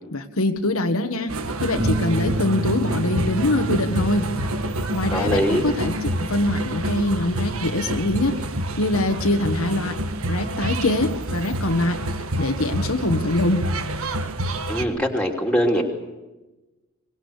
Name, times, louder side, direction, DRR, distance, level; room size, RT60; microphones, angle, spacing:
voice 1, 0.1-4.3 4.9-8.4 8.8-10.0 10.3-12.0 12.4-13.7, left 1 dB, 80° left, 6 dB, 1.6 m, -23 dB
sound 1, 1.3-14.8, right 1 dB, 80° right, 1.5 m, -28 dB
Bass guitar, 1.8-8.0, right 1 dB, 65° right, 4.5 m, -31 dB
voice 2, 5.1-5.6 14.7-15.8, equal, 5° left, 2 dB, 3.0 m, -22 dB
23.5 x 20.0 x 8.3 m, 1.1 s
head